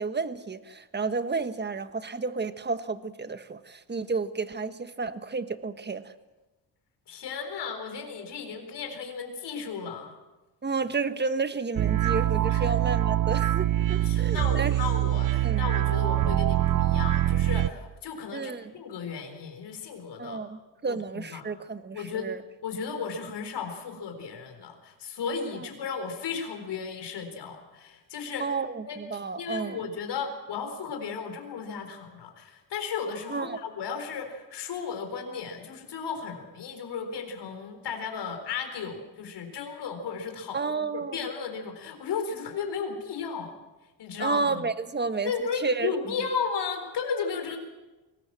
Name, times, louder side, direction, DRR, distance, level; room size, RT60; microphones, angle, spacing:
voice 1, 0.0-6.1 10.6-14.8 15.4-15.6 18.3-18.7 20.2-22.4 28.4-29.9 33.3-33.6 40.5-41.2 44.2-45.9, right 4 dB, 25° right, 11 dB, 1.4 m, -31 dB
voice 2, 7.1-10.1 12.5-12.7 14.0-20.4 20.9-21.5 21.9-22.3 22.6-28.4 28.9-43.5 44.0-44.7 45.2-47.6, left 6 dB, 75° left, 5 dB, 4.3 m, -35 dB
sound 1, 11.8-17.7, right 13 dB, 50° right, 0.7 m, -24 dB
22.5 x 19.0 x 7.6 m, 1.1 s
cardioid pair, 90°, 41 cm